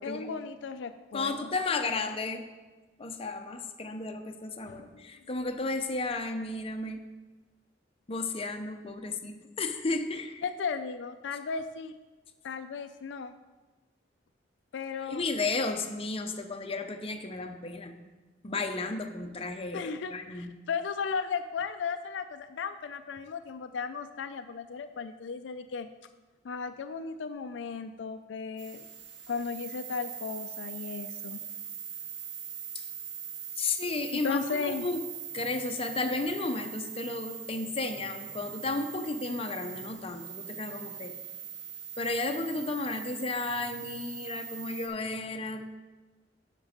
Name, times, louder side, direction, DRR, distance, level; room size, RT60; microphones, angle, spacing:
voice 1, 0.0-1.5 4.7-5.1 10.4-12.0 12.4-13.3 14.7-15.2 19.7-25.9 26.4-28.9 29.3-31.5 34.1-34.9, left 5 dB, 75° left, 9 dB, 0.4 m, -35 dB
voice 2, 1.1-2.4 3.0-7.0 8.1-10.4 15.0-18.0 18.4-20.5 32.7-32.8 33.6-35.0 35.3-41.1 42.0-45.6, left 3 dB, 30° left, 5 dB, 0.7 m, -33 dB
sound 1, 28.6-44.9, right 8 dB, 85° right, 1.1 m, -41 dB
9.0 x 6.1 x 5.1 m, 1.2 s
head